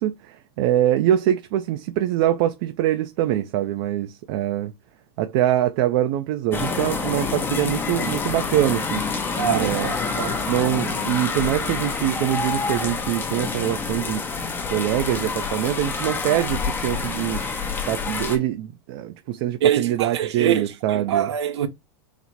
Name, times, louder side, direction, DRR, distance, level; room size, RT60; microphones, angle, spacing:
voice 1, 0.0-4.7 5.2-9.3 9.5-9.9 10.5-14.2 14.7-17.4 17.9-21.3, right 12 dB, 55° right, 0.5 m, -24 dB
sound 1, 6.5-18.4, left 4 dB, 15° left, 0.7 m, -27 dB
voice 2, 9.4-10.4 19.6-21.7, right 9 dB, 90° right, 0.7 m, -24 dB
4.1 x 2.0 x 4.4 m
supercardioid pair, 135°, 14 cm